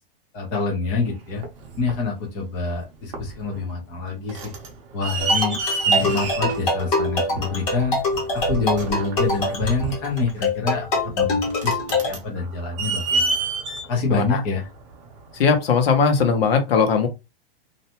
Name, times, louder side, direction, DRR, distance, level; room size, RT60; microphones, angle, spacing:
voice 1, 0.3-1.4 1.8-4.5 4.9-8.0 8.3-13.4 13.9-14.7, left 4 dB, 15° left, 0.4 m, -26 dB
sound 1, 0.9-2.1 2.7-2.8 3.1-3.6 3.9-15.4 16.2-16.3, right 4 dB, 30° right, 0.6 m, -28 dB
sound 2, 5.2-12.1, left 2 dB, 40° left, 1.0 m, -24 dB
voice 2, 14.1-14.4 15.3-17.1, left 5 dB, 75° left, 0.9 m, -19 dB
2.6 x 2.1 x 2.8 m
supercardioid pair, 175°, 30 cm